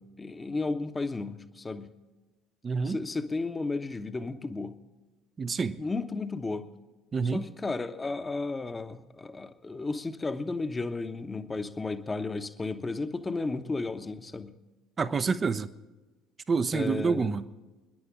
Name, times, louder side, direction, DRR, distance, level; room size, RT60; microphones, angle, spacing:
voice 1, 0.0-1.9 2.8-4.7 5.8-6.7 7.3-14.5 16.7-17.4, left 3 dB, 20° left, 1.1 m, -33 dB
voice 2, 2.6-3.0 5.4-5.8 7.1-7.4 15.0-15.7 16.5-17.4, right 5 dB, 30° right, 0.8 m, -27 dB
27.0 x 11.0 x 3.7 m
figure-of-eight pair, 60°, 0 cm